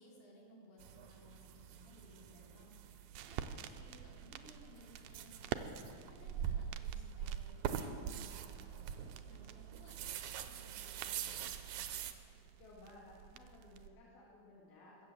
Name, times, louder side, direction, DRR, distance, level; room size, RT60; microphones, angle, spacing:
voice 1, 0.0-11.4, left 1 dB, 75° left, -4 dB, 4.9 m, -61 dB
sound 1, 0.8-12.1, right 9 dB, 75° right, 1.9 m, -44 dB
sound 2, 2.6-13.9, right 9 dB, 90° right, 2.4 m, -50 dB
voice 2, 12.6-15.1, left 2 dB, 90° left, -5 dB, 3.8 m, -58 dB
22.0 x 8.4 x 7.5 m, 2.5 s
omnidirectional pair, 4.1 m